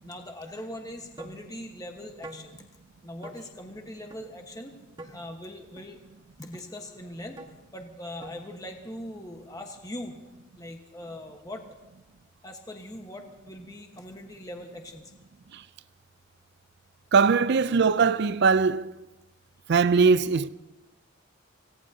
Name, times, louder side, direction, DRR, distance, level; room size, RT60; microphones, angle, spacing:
voice 1, 0.0-2.6 3.0-6.0 6.4-7.5 7.7-10.2 10.6-11.6 12.4-15.1, left 1 dB, 15° left, 1.3 m, -41 dB
sound 1, 1.2-1.4 2.2-2.4 3.2-3.4 4.1-4.2 5.0-5.1 5.8-5.9 6.5-6.6 7.4-7.5 8.2-8.4, right 1 dB, 25° right, 1.5 m, -43 dB
voice 2, 17.1-18.9 19.7-20.5, right 5 dB, 55° right, 0.5 m, -21 dB
26.5 x 17.5 x 2.8 m
head